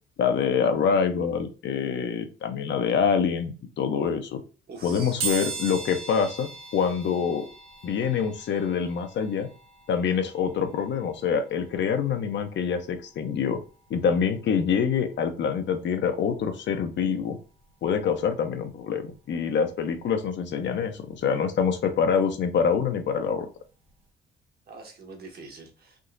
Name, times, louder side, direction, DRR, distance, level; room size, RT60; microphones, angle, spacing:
voice 1, 0.2-4.4 4.8-7.5 7.8-9.5 9.9-13.6 13.9-17.4 17.8-23.5, left 6 dB, 65° left, 0.7 m, -25 dB
voice 2, 4.7-5.2 24.7-26.0, right 4 dB, 50° right, 1.1 m, -44 dB
sound 1, 5.2-15.9 16.3-16.4 17.6-17.7 18.0-20.1 20.4-23.0 23.4-23.6 23.9-24.0, right 5 dB, 90° right, 1.5 m, -40 dB
3.6 x 2.8 x 2.5 m
cardioid pair, 90°, 20 cm